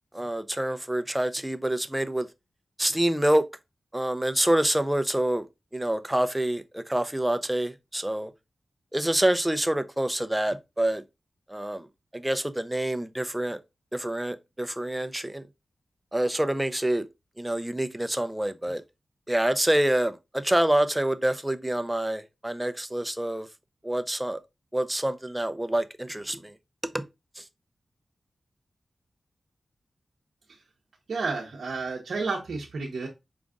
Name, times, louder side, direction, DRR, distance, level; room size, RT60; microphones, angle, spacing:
voice 1, 0.1-2.3 2.8-3.4 3.9-5.5 5.7-8.3 8.9-11.0 11.5-11.9 12.1-13.6 13.9-15.4 16.1-17.1 17.4-18.8 19.3-23.5 23.8-24.4 24.7-26.5 26.9-27.0 27.4-27.5, right 1 dB, 15° right, 0.5 m, -26 dB
voice 2, 31.1-33.1, right 4 dB, 80° right, 0.8 m, -31 dB
5.1 x 2.5 x 3.5 m
cardioid pair, 45°, 0 cm